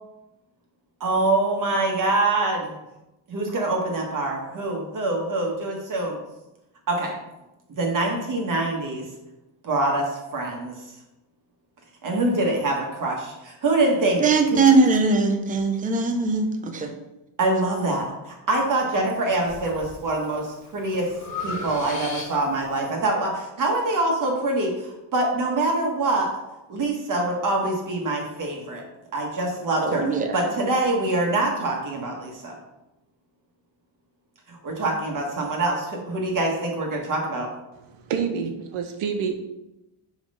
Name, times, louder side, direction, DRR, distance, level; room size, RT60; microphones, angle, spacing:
voice 1, 1.0-2.7 3.3-6.2 6.9-7.1 7.8-9.1 9.6-10.8 12.0-14.2 17.4-21.1 21.4-26.3 26.7-28.8 29.1-30.0 30.3-32.6 34.5-37.5, right 2 dB, 40° right, 0 dB, 1.4 m, -25 dB
voice 2, 14.2-16.9 29.8-30.4, right 3 dB, 15° right, 4 dB, 0.6 m, -20 dB
Breathing, 19.5-20.0 20.4-22.7, left 3 dB, 35° left, 1.5 m, -36 dB
voice 3, 37.9-39.4, right 6 dB, 80° right, 6 dB, 1.1 m, -28 dB
5.3 x 4.9 x 5.4 m, 0.95 s
cardioid pair, 160°, 48 cm